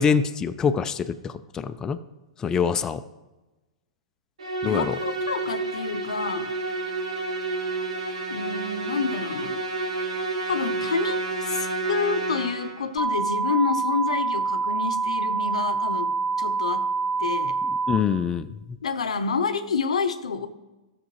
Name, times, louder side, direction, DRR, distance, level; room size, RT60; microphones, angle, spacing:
voice 1, 0.0-2.0 2.4-3.0 4.6-5.0 17.6-18.6, left 6 dB, 20° left, 9 dB, 0.4 m, -25 dB
Musical instrument, 4.4-12.9, right 3 dB, 85° right, 1.5 m, -30 dB
voice 2, 4.6-6.5 8.3-9.6 10.5-16.1 16.4-16.9 17.2-17.6 18.8-20.5, left 5 dB, 85° left, 10 dB, 0.7 m, -28 dB
sound 1, 13.0-18.0, right 4 dB, 15° right, 0.9 m, -26 dB
13.0 x 6.7 x 3.1 m, 1.1 s
hypercardioid pair, 120°, 3 cm